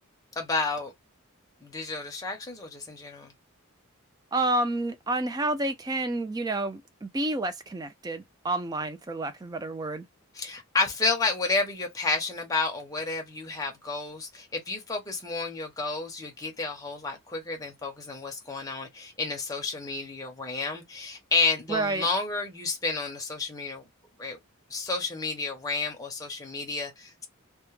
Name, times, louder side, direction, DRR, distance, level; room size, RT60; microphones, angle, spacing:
voice 1, 0.4-0.9 1.6-3.3 10.4-23.8 24.2-24.4 24.7-27.3, left 3 dB, 15° left, 0.6 m, -31 dB
voice 2, 4.3-10.0 21.7-22.1, right 2 dB, 20° right, 0.3 m, -29 dB
2.2 x 2.1 x 3.0 m
head